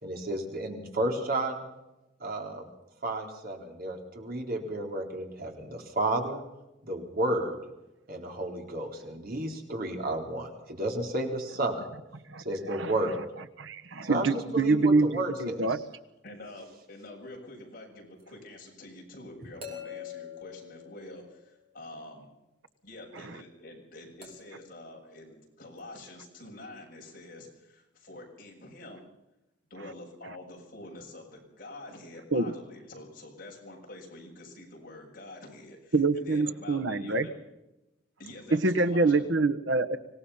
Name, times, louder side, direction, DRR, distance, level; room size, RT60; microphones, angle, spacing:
voice 1, 0.0-1.6 2.2-2.7 3.0-6.4 6.8-7.6 8.1-11.9 12.4-13.1 14.0-14.3 14.5-15.6, right 1 dB, 50° right, 2 dB, 4.0 m, -32 dB
voice 2, 12.3-12.9 13.6-15.8 32.3-32.5 35.9-37.3 38.5-40.0, right 3 dB, 85° right, 8 dB, 1.4 m, -26 dB
voice 3, 16.2-22.3 22.8-29.0 29.7-37.3 38.2-39.3 39.7-39.9, left 1 dB, 50° left, 0 dB, 7.2 m, -47 dB
sound 1, 18.2-18.3 19.6-21.7 24.2-24.7 25.8-25.9, left 8 dB, 30° right, 5.7 m, -44 dB
25.5 x 18.0 x 5.7 m, 0.95 s
head